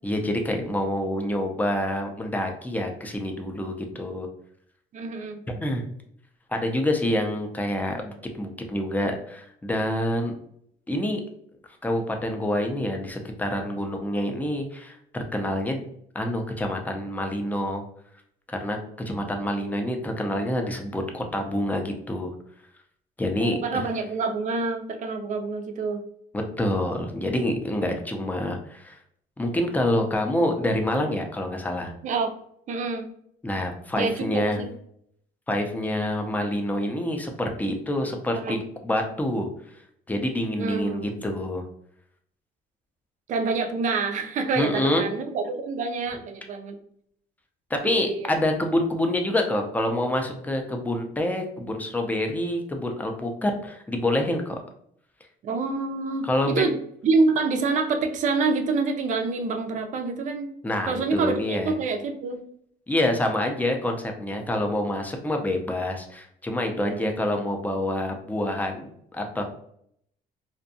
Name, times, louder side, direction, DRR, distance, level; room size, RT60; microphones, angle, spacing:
voice 1, 0.0-4.3 5.5-5.8 6.5-10.3 10.9-11.2 11.8-15.8 16.1-17.8 18.5-18.8 19.1-22.3 23.2-23.8 26.6-29.0 29.4-31.9 33.4-34.6 35.5-39.5 40.1-41.6 44.6-45.0 47.7-54.6 56.2-56.6 60.6-61.7 62.9-69.4, left 1 dB, 10° left, 3 dB, 0.4 m, -27 dB
voice 2, 4.9-5.4 23.4-26.0 32.0-32.3 32.7-33.1 34.0-34.7 38.3-38.6 40.6-41.3 43.3-46.8 47.8-48.3 55.4-56.7 57.0-60.5 60.8-62.4 66.7-67.1, right 4 dB, 45° right, 6 dB, 0.4 m, -27 dB
2.6 x 2.2 x 2.6 m, 0.69 s
cardioid pair, 110°, 17 cm